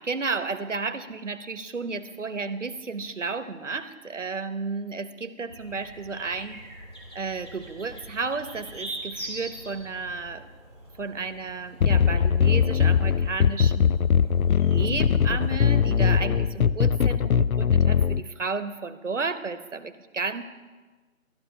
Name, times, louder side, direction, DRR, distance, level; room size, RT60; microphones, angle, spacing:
voice 1, 0.0-6.6 7.1-10.5 11.0-14.1 14.7-20.4, right 4 dB, 60° right, 11 dB, 0.9 m, -32 dB
sound 1, 5.5-16.2, right 1 dB, 20° left, 1.6 m, -43 dB
sound 2, 11.8-18.2, left 7 dB, 80° left, 0.5 m, -21 dB
13.0 x 11.0 x 5.5 m, 1.3 s
figure-of-eight pair, 180°, 41 cm